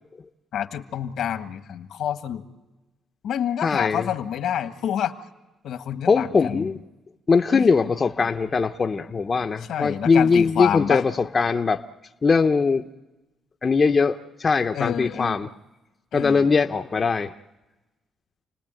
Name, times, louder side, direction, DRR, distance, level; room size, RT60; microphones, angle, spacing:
voice 1, 0.5-2.4 3.2-5.1 5.6-6.7 7.5-7.7 9.7-11.0 14.7-15.4 16.1-16.5, left 9 dB, 75° left, 9 dB, 1.5 m, -28 dB
voice 2, 3.6-4.1 6.1-6.8 7.3-11.8 12.2-12.8 13.6-15.5 16.1-17.3, left 4 dB, 35° left, 6 dB, 0.8 m, -21 dB
29.0 x 19.0 x 9.0 m, 1.1 s
cardioid pair, 90°, 0 cm